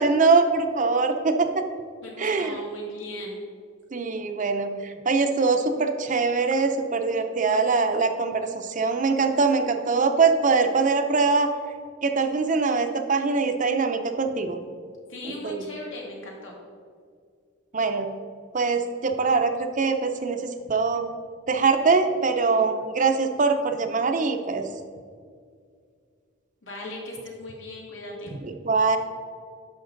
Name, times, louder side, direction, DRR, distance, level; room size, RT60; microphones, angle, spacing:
voice 1, 0.0-1.6 2.2-2.5 3.9-11.5 12.0-14.6 15.2-15.6 17.7-18.1 18.5-20.4 20.7-21.1 21.5-24.6 28.4-29.0, right 4 dB, 40° right, 6 dB, 0.6 m, -23 dB
voice 2, 2.0-3.4 15.1-16.5 26.6-28.3, left 1 dB, 80° left, -2 dB, 2.2 m, -37 dB
10.5 x 6.5 x 3.9 m, 2.1 s
head